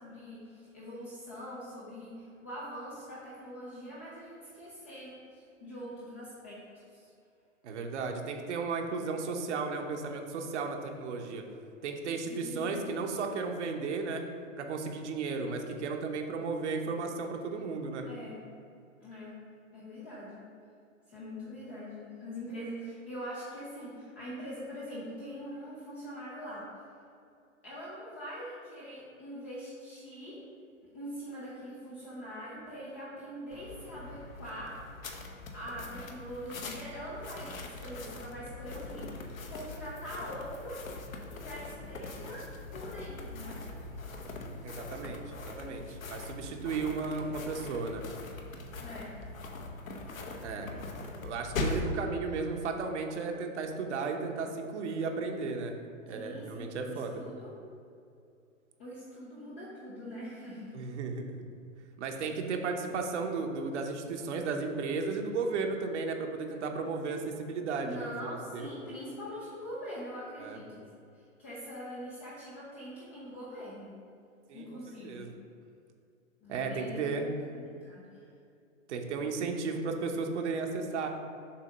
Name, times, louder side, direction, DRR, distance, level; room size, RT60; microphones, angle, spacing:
voice 1, 0.0-6.6 6.9-7.1 12.3-12.9 18.0-18.4 19.0-19.4 19.7-20.4 21.1-26.7 27.6-30.4 30.9-34.7 35.5-39.2 39.5-40.8 41.3-42.4 42.7-43.6 48.8-49.2 50.5-50.8 51.1-51.2 56.1-57.5 58.8-60.8 67.8-70.8 71.1-74.0 74.5-75.3 76.4-78.2, equal, 10° left, -8 dB, 0.3 m, -43 dB
voice 2, 7.6-11.5 11.8-14.3 14.6-18.1 44.6-48.0 50.4-50.7 51.2-55.8 56.1-57.2 60.7-61.5 62.0-68.1 68.5-68.7 70.4-70.6 74.5-74.7 75.0-75.3 76.5-77.3 78.9-81.1, right 4 dB, 55° right, 4 dB, 1.0 m, -34 dB
sound 1, 33.5-51.9, left 3 dB, 80° left, 1.0 m, -41 dB
7.2 x 2.8 x 5.3 m, 2.5 s
hypercardioid pair, 130°, 40 cm